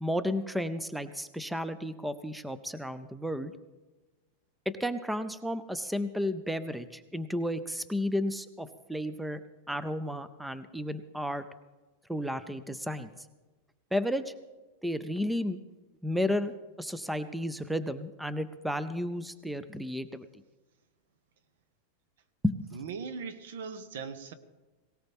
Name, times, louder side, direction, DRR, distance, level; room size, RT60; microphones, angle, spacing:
voice 1, 0.0-3.5 4.7-9.4 9.7-11.4 12.1-13.1 13.9-14.3 14.8-15.6 16.0-20.3 22.4-22.7, left 1 dB, ahead, 13 dB, 0.4 m, -32 dB
voice 2, 22.7-24.3, right 5 dB, 80° right, 11 dB, 1.2 m, -39 dB
18.5 x 18.0 x 3.5 m, 1.2 s
supercardioid pair, 175°, 0 cm